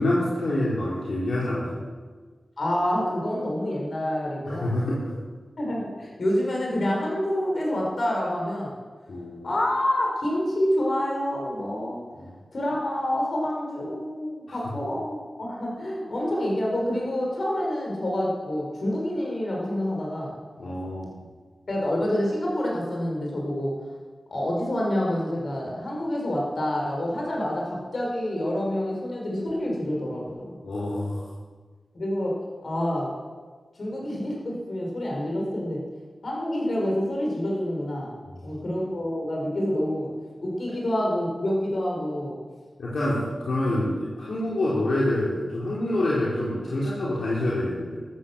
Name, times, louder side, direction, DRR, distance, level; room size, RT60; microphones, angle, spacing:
voice 1, 0.0-1.8 4.5-5.0 9.1-9.5 12.2-12.3 20.6-21.2 30.6-31.2 42.8-48.0, left 1 dB, 70° left, -6 dB, 4.2 m, -26 dB
voice 2, 2.6-4.8 5.6-8.8 9.4-12.0 12.5-20.3 21.7-23.7 24.3-30.5 31.9-32.4 32.6-33.1 33.8-35.8 36.2-38.1 38.4-40.1 40.4-42.4, left 1 dB, 55° left, -2 dB, 5.8 m, -27 dB
14.0 x 13.5 x 7.7 m, 1.4 s
wide cardioid pair, 95°, 0 cm